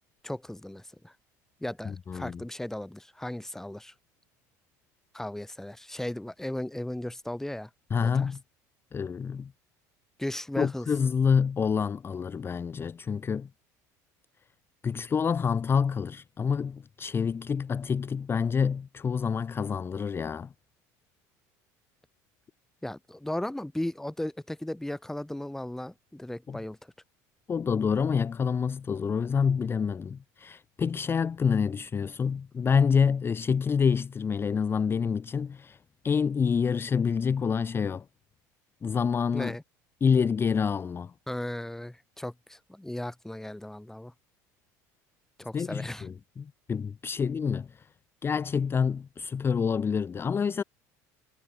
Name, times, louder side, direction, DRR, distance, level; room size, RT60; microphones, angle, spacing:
voice 1, 0.2-1.1 1.6-3.9 5.1-7.7 8.0-8.3 10.2-10.9 22.8-26.8 39.3-39.6 41.3-44.1 45.4-46.1, left 1 dB, 5° left, 1.4 m, -36 dB
voice 2, 1.9-2.4 7.9-8.4 8.9-9.5 10.6-13.5 14.8-20.5 26.5-26.6 27.5-35.8 36.0-38.0 38.8-39.6 40.0-41.1 45.5-47.9 48.2-50.6, left 6 dB, 25° left, 0.6 m, -27 dB
supercardioid pair, 85°, 9 cm